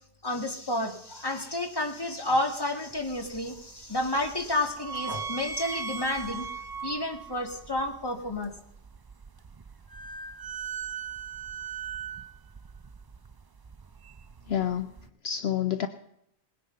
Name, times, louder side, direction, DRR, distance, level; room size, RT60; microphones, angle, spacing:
voice 1, 0.2-6.5 6.8-8.5, left 1 dB, 20° left, 4 dB, 2.1 m, -30 dB
sound 1, 2.9-15.1, right 6 dB, 40° right, 0.3 m, -40 dB
voice 2, 14.5-14.9 15.2-15.9, left 10 dB, 70° left, 10 dB, 1.0 m, -28 dB
20.0 x 10.0 x 5.5 m, 0.78 s
omnidirectional pair, 1.2 m